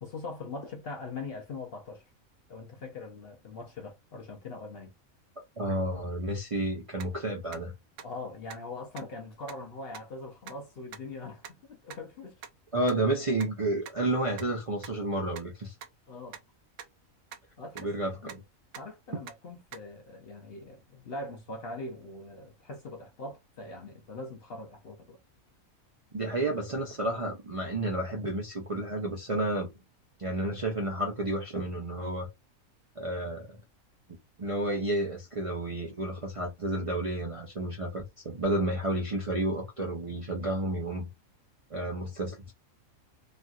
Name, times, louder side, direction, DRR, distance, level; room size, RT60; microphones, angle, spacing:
voice 1, 0.0-2.0 2.5-4.9 8.0-12.4 16.1-16.4 17.6-18.3 18.7-25.2, left 2 dB, 55° left, 0.7 m, -42 dB
voice 2, 5.6-7.7 12.7-15.7 17.8-18.4 26.1-29.7 30.2-32.3 33.0-33.5 34.4-41.1 41.7-42.5, right 1 dB, 40° right, 0.5 m, -31 dB
sound 1, 7.0-7.1 7.5-7.6 8.0-8.1 8.5-8.6 9.0-9.1 9.5-9.6 9.9-10.0 10.5-10.6 10.9-11.0 11.4-11.5 11.9-12.0 12.4-12.5 12.9-13.0 13.4-13.5 13.9-14.0 14.4-14.5 14.8-14.9 15.3-15.4 15.8-15.9 16.3-16.4 16.8-16.9 17.3-17.4 17.8-17.9 18.3-18.4 18.7-18.8 19.3-19.4 19.7-19.8, right 8 dB, 70° right, 0.9 m, -43 dB
3.2 x 2.7 x 2.3 m
omnidirectional pair, 1.4 m